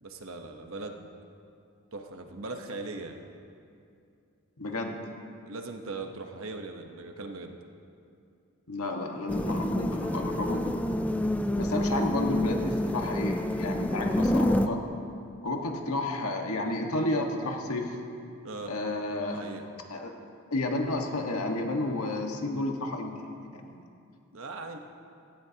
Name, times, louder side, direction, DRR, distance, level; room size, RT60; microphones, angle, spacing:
voice 1, 0.0-1.0 1.9-3.3 5.4-7.6 18.4-18.7 19.2-19.7 24.3-24.8, right 3 dB, 65° right, 4 dB, 1.1 m, -39 dB
voice 2, 4.6-5.0 8.7-10.9 11.6-14.8 15.4-18.0 18.7-19.6 19.9-20.1 20.5-23.2 23.5-23.8, left 2 dB, 80° left, 2 dB, 1.6 m, -31 dB
sound 1, 9.3-14.7, left 1 dB, 5° left, 0.3 m, -28 dB
17.5 x 15.5 x 2.9 m, 2.5 s
head